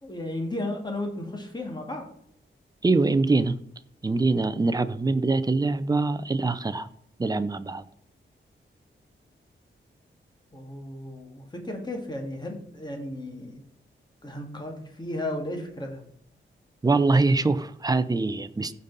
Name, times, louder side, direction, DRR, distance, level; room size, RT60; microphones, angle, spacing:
voice 1, 0.0-2.1 10.5-13.6 14.2-16.0, left 1 dB, 20° left, 2 dB, 2.0 m, -34 dB
voice 2, 2.8-3.6 4.0-6.9 7.2-7.8 16.8-18.7, right 3 dB, 20° right, 12 dB, 0.5 m, -23 dB
15.5 x 5.3 x 4.0 m, 0.69 s
wide cardioid pair, 145°, 20 cm